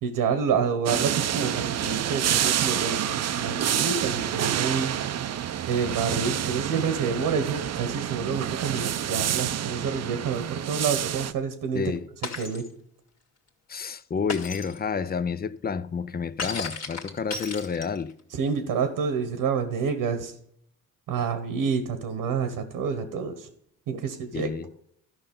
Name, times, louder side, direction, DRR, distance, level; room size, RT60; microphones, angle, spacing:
voice 1, 0.0-4.9 5.7-11.9 12.3-12.6 18.4-20.3 21.1-23.5 23.9-24.5, right 6 dB, 80° right, 1.3 m, -28 dB
sound 1, 0.9-11.3, right 10 dB, 50° right, 0.6 m, -28 dB
voice 2, 11.7-12.1 13.7-18.1 24.3-24.7, left 6 dB, 30° left, 0.5 m, -30 dB
Shatter, 12.2-12.7 14.3-14.8 16.4-18.1, left 4 dB, 50° left, 1.9 m, -34 dB
12.5 x 5.5 x 5.4 m
cardioid pair, 80°, 33 cm